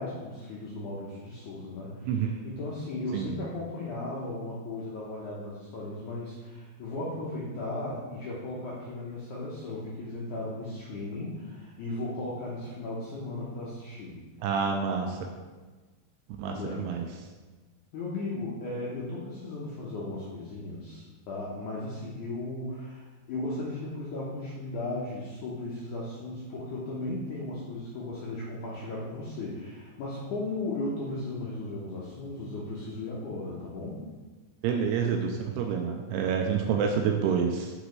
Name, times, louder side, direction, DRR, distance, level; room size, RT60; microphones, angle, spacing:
voice 1, 0.0-14.2 16.4-16.9 17.9-34.0, left 2 dB, 80° left, -6 dB, 1.7 m, -36 dB
voice 2, 14.4-15.3 16.4-17.1 34.6-37.7, right 6 dB, 85° right, 3 dB, 2.5 m, -28 dB
7.1 x 5.1 x 3.1 m, 1.3 s
omnidirectional pair, 4.7 m